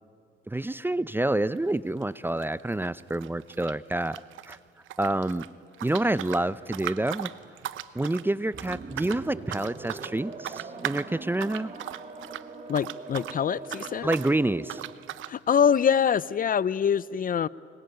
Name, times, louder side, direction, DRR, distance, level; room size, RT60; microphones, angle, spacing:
voice 1, 0.5-4.6 5.0-5.5 5.8-7.3 7.9-11.7 14.0-14.8, right 1 dB, 10° right, 18 dB, 0.6 m, -28 dB
sound 1, 1.6-4.6 4.9-13.4 13.6-14.3 14.7-15.3, right 13 dB, 85° right, 0.9 m, -38 dB
sound 2, 8.5-15.0, right 3 dB, 35° right, 2.8 m, -42 dB
voice 2, 12.7-14.1 15.3-17.5, left 8 dB, 45° left, 20 dB, 0.6 m, -24 dB
25.0 x 22.0 x 9.2 m, 2.2 s
cardioid pair, 90°, 20 cm